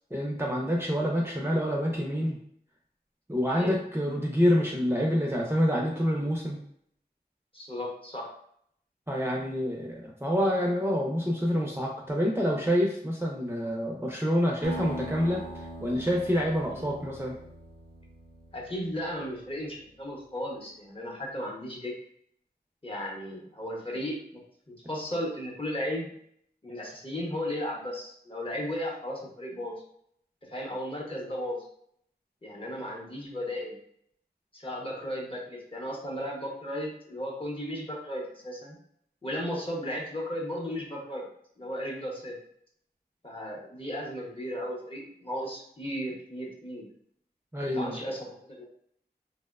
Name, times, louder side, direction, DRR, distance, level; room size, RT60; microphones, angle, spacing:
voice 1, 0.1-2.4 3.3-6.6 9.1-17.4 47.5-48.0, equal, 15° right, -2 dB, 0.5 m, -27 dB
voice 2, 7.5-8.3 16.7-16.9 18.5-21.9 22.8-24.4 24.7-26.1 26.6-29.8 30.5-31.7 32.4-33.7 34.5-38.7 39.2-41.2 41.6-42.4 43.2-46.8 47.6-48.6, equal, 30° left, -2 dB, 0.8 m, -35 dB
Acoustic guitar, 14.6-19.5, right 1 dB, 70° right, 0.4 m, -42 dB
2.8 x 2.0 x 2.3 m, 0.68 s
wide cardioid pair, 45°, 17 cm